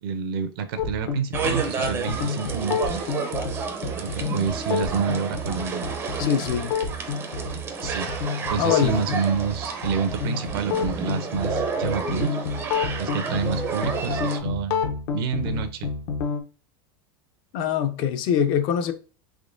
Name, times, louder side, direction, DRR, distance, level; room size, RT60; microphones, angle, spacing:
voice 1, 0.0-3.1 4.0-5.9 7.8-8.1 8.4-12.4 13.0-15.9, right 7 dB, 70° right, 0.6 m, -28 dB
sound 1, 0.8-16.4, left 5 dB, 65° left, 0.7 m, -29 dB
sound 2, 1.3-14.4, right 4 dB, 20° right, 0.4 m, -31 dB
voice 2, 6.2-6.7 8.6-9.0 17.5-18.9, left 9 dB, 40° left, 0.4 m, -23 dB
3.6 x 3.0 x 2.6 m
supercardioid pair, 165°, 13 cm